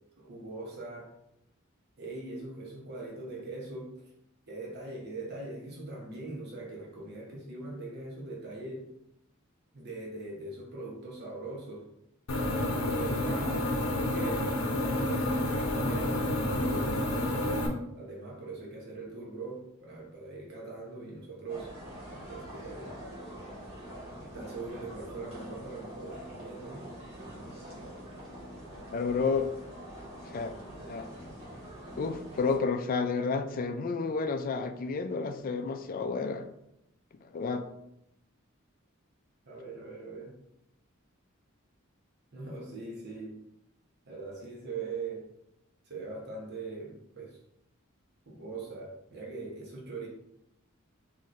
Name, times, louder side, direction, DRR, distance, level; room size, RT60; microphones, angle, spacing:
voice 1, 0.2-1.1 2.0-3.9 4.5-8.9 9.7-11.8 12.7-14.5 15.0-17.4 17.9-21.7 22.3-22.9 24.2-26.8 39.5-40.3 42.3-43.4 44.1-45.3 45.9-47.4 48.3-50.1, right 3 dB, 55° right, -2 dB, 0.9 m, -41 dB
sound 1, 12.3-17.7, left 1 dB, 80° left, 0.6 m, -29 dB
sound 2, 21.5-32.6, equal, 30° right, 1.3 m, -45 dB
voice 2, 28.9-29.5 30.3-30.5 30.9-31.1 32.0-36.4 37.3-37.6, left 4 dB, 45° left, 9 dB, 0.3 m, -30 dB
4.1 x 3.0 x 2.5 m, 0.80 s
head